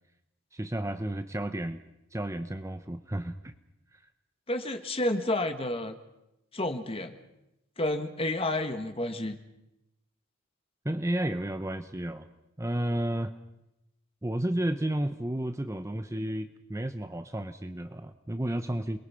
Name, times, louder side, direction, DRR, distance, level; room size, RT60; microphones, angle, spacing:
voice 1, 0.5-1.8 2.1-3.5 3.9-4.0 10.8-12.3 12.6-13.4 14.2-19.0, right 1 dB, 15° right, 10 dB, 0.7 m, -32 dB
voice 2, 4.5-5.9 6.5-7.1 7.8-9.3, left 1 dB, 25° left, 7 dB, 1.6 m, -30 dB
29.0 x 22.0 x 5.8 m, 0.90 s
head